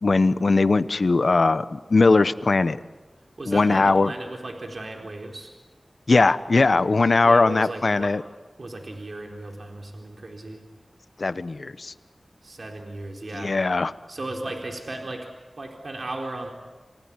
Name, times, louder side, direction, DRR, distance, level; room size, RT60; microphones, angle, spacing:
voice 1, 0.0-2.8 3.5-4.1 6.1-8.2 11.2-11.9 13.3-13.9, left 3 dB, 70° left, 13 dB, 1.0 m, -20 dB
voice 2, 3.4-5.5 7.2-8.1 8.6-10.6 12.4-13.5 14.1-15.3 15.6-16.5, right 2 dB, 65° right, 2 dB, 4.1 m, -35 dB
28.5 x 19.0 x 9.8 m, 1.2 s
wide cardioid pair, 50°, 0 cm